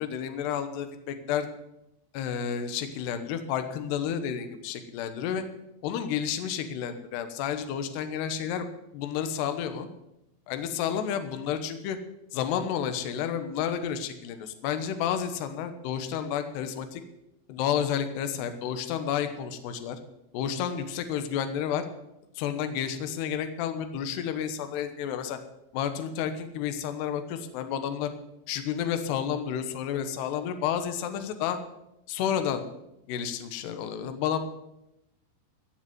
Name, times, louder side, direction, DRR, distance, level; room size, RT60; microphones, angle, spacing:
voice 1, 0.0-1.5 2.1-5.4 5.8-8.7 8.9-9.9 10.5-12.0 12.3-17.0 17.5-20.0 20.3-21.9 22.4-25.4 25.7-28.1 28.5-31.6 32.1-32.7 33.1-34.4, left 8 dB, 70° left, 8 dB, 3.0 m, -31 dB
15.0 x 7.1 x 9.4 m, 0.87 s
omnidirectional pair, 5.4 m